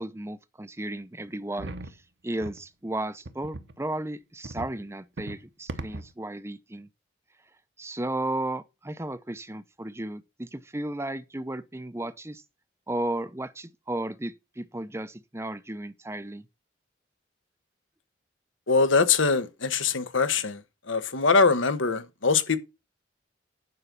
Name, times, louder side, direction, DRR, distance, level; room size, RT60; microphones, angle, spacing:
voice 1, 0.0-6.9 7.8-12.4 12.9-16.4, right 1 dB, 15° right, 0.6 m, -34 dB
sound 1, 1.6-1.9 2.4-2.6 3.3-3.7 4.4-4.8 5.2-5.4 5.7-6.1, right 2 dB, 60° right, 1.0 m, -38 dB
voice 2, 18.7-20.6 20.9-22.6, left 4 dB, 80° left, 1.3 m, -23 dB
9.9 x 5.4 x 6.0 m
head